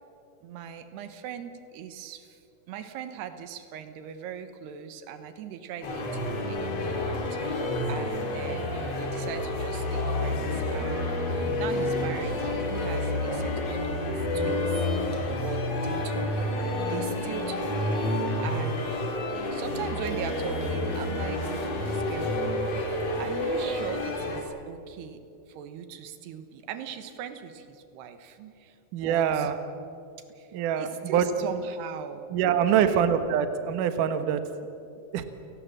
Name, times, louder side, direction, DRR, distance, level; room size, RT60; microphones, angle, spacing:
voice 1, 0.4-2.4 2.7-15.1 15.4-16.6 16.8-19.0 19.5-21.4 21.8-22.5 23.2-25.2 25.5-29.5 30.4-30.5 30.8-32.4 32.7-33.1, right 8 dB, 85° right, 9 dB, 3.4 m, -40 dB
sound 1, 5.8-24.4, left 1 dB, 40° left, 3.6 m, -29 dB
voice 2, 28.9-29.6 30.5-31.3 32.3-34.4 35.1-35.2, right 8 dB, 65° right, 9 dB, 2.5 m, -24 dB
30.0 x 18.0 x 7.5 m, 2.7 s
omnidirectional pair, 4.7 m